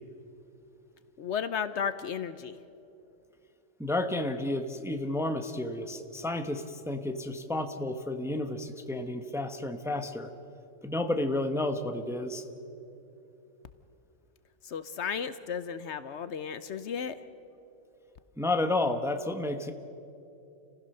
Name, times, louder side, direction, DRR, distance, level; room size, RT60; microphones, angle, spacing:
voice 1, 1.2-2.6 14.6-17.2, left 7 dB, 65° left, 13 dB, 1.0 m, -34 dB
voice 2, 3.8-10.3 10.8-12.4 18.4-19.7, left 2 dB, ahead, 7 dB, 0.8 m, -31 dB
29.5 x 15.5 x 6.6 m, 2.8 s
omnidirectional pair, 1.3 m